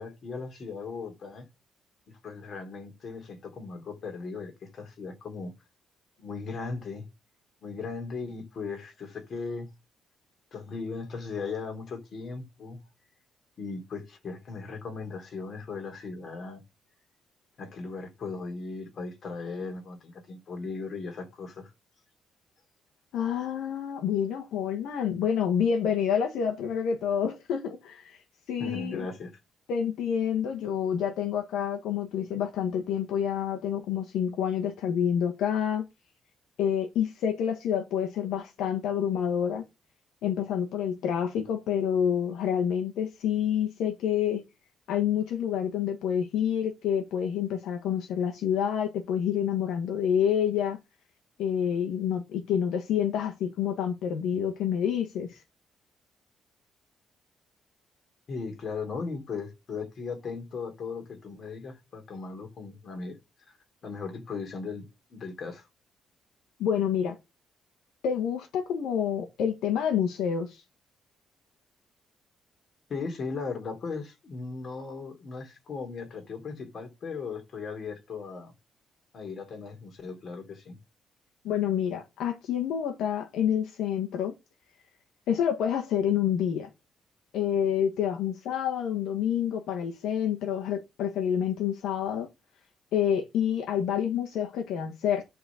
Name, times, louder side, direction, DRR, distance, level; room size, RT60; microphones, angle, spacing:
voice 1, 0.0-1.5 2.1-5.5 6.2-7.1 7.6-9.7 10.5-12.8 13.6-16.6 17.6-21.7 28.6-29.3 58.3-63.2 63.8-65.7 72.9-78.5 79.1-80.8, left 4 dB, 55° left, 3.4 m, -37 dB
voice 2, 23.1-28.2 28.5-29.0 29.7-35.8 36.6-39.6 40.2-44.4 44.9-50.8 51.4-55.4 66.6-67.2 68.0-70.6 81.4-84.3 85.3-86.7 87.3-92.3 92.9-95.2, left 8 dB, 85° left, 1.4 m, -28 dB
11.0 x 4.0 x 6.3 m
cardioid pair, 90°, 0 cm